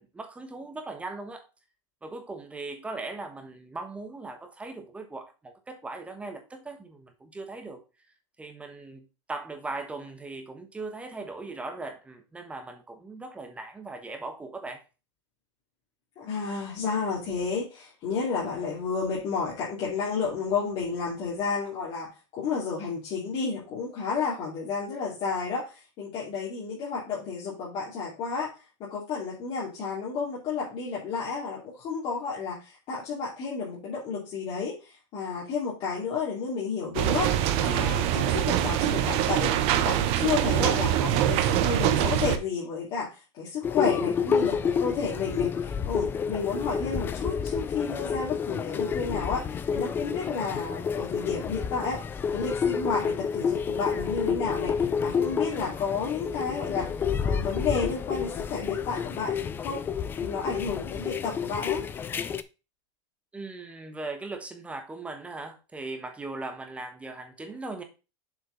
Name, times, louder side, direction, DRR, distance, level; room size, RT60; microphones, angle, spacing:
voice 1, 0.0-1.5 2.0-7.8 8.4-14.8 63.3-67.8, right 3 dB, 10° right, 1.3 m, -39 dB
voice 2, 16.2-28.5 28.8-39.5 39.8-52.0 52.3-56.9 57.2-59.8 60.2-61.8, left 5 dB, 35° left, 2.7 m, -31 dB
sound 1, 36.9-42.4, right 11 dB, 40° right, 1.1 m, -24 dB
sound 2, 43.6-62.4, left 6 dB, 15° left, 0.4 m, -29 dB
7.3 x 5.0 x 3.9 m
supercardioid pair, 160°, 15 cm